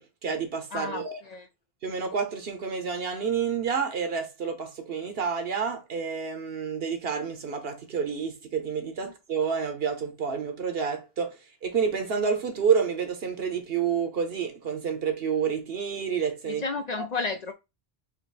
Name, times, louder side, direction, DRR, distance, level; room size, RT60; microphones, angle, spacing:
voice 1, 0.0-1.2 1.8-16.6 17.0-17.1, right 6 dB, 70° right, 1.2 m, -29 dB
voice 2, 0.7-1.5 9.0-9.1 16.5-17.5, left 4 dB, 55° left, 0.5 m, -32 dB
4.3 x 2.6 x 4.1 m
omnidirectional pair, 1.0 m